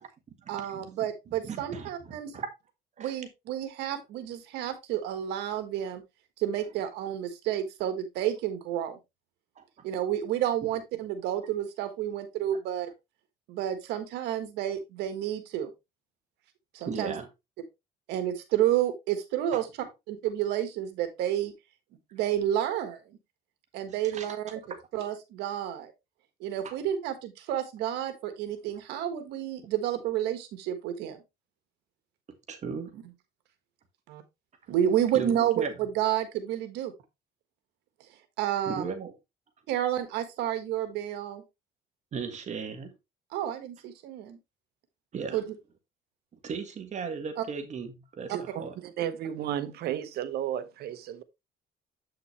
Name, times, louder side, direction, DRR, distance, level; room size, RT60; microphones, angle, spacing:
voice 1, 0.5-2.3 3.0-6.0 6.4-9.0 9.8-12.9 13.5-15.7 16.7-17.2 18.1-19.7 20.1-21.5 22.1-23.0 23.7-24.6 24.9-25.9 26.4-31.2 32.9-33.0 34.1-34.2 34.7-36.9 38.4-38.8 39.7-41.4 43.3-44.4 45.3-45.5 47.4-47.5 48.3-48.4, right 11 dB, 90° right, 1.5 m, -30 dB
voice 2, 1.4-1.9 2.3-2.5 3.0-3.1 16.9-17.3 19.5-19.6 24.1-24.3 32.5-32.9 35.2-35.7 38.7-39.1 42.1-42.9 45.1-45.4 46.4-47.9 48.2-48.3 48.6-48.7, right 5 dB, 45° right, 1.7 m, -35 dB
voice 3, 48.3-51.2, right 10 dB, 70° right, 1.0 m, -33 dB
8.4 x 5.8 x 3.2 m
cardioid pair, 110°, 17 cm